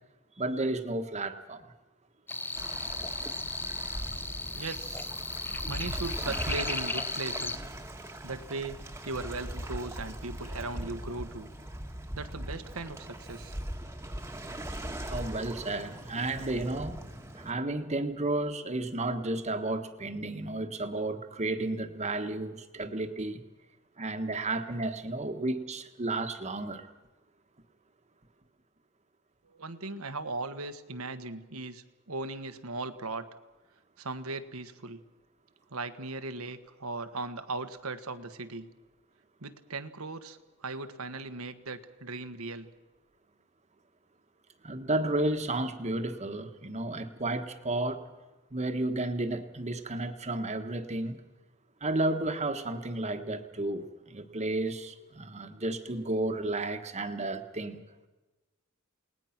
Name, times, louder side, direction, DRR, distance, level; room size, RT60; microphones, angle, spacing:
voice 1, 0.4-1.7 15.1-17.0 17.4-23.4 24.0-26.9 44.6-48.0 48.5-51.2 51.8-57.8, right 2 dB, 30° right, 7 dB, 1.5 m, -32 dB
sound 1, 2.3-7.6, left 3 dB, 10° left, 0.6 m, -35 dB
Waves surf, 2.6-17.5, right 1 dB, 10° right, 1.6 m, -40 dB
voice 2, 4.5-5.1 5.7-7.7 8.2-11.5 12.1-13.6 29.4-33.2 34.0-35.0 35.7-38.7 39.4-42.7, right 3 dB, 80° right, 9 dB, 1.5 m, -38 dB
29.0 x 19.5 x 6.0 m, 1.2 s
head